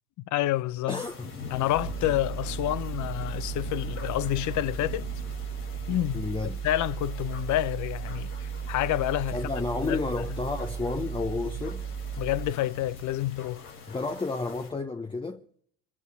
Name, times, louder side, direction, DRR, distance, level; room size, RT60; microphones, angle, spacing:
voice 1, 0.3-1.0 1.5-5.1 5.9-6.3 6.6-9.4 9.8-10.0 12.2-13.7, left 14 dB, 45° left, 0.6 m, -28 dB
sound 1, 0.9-14.7, left 4 dB, 85° left, 4.1 m, -43 dB
voice 2, 0.9-1.3 6.1-6.6 9.3-11.9 13.9-15.4, left 3 dB, 10° left, 0.7 m, -31 dB
sound 2, 1.7-12.5, right 8 dB, 25° right, 1.6 m, -35 dB
23.5 x 8.5 x 5.5 m
hypercardioid pair, 80°, 44 cm